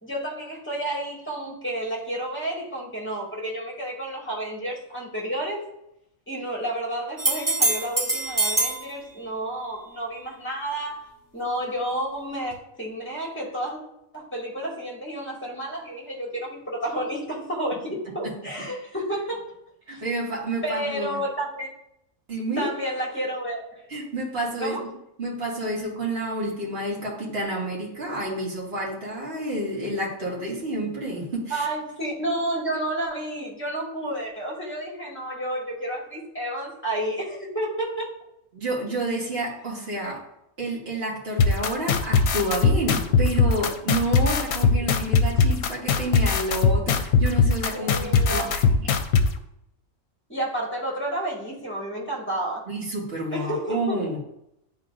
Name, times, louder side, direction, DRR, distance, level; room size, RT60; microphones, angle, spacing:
voice 1, 0.0-5.7 6.3-11.1 11.3-13.8 14.1-19.4 19.9-20.0 20.6-21.7 22.6-23.9 24.6-24.8 31.5-38.1 47.7-48.5 50.3-52.7 53.3-54.0, right 1 dB, 10° left, -3 dB, 2.1 m, -30 dB
sound 1, 7.2-8.8 12.5-12.6, right 2 dB, 15° right, 0.8 m, -24 dB
voice 2, 19.9-21.2 22.3-22.7 23.9-24.8 25.2-31.7 38.5-40.2 40.6-48.9 52.7-54.2, right 1 dB, 45° right, -6 dB, 2.2 m, -29 dB
sound 2, 41.4-49.3, left 5 dB, 75° left, 1.0 m, -19 dB
10.5 x 3.8 x 2.5 m, 0.79 s
omnidirectional pair, 1.4 m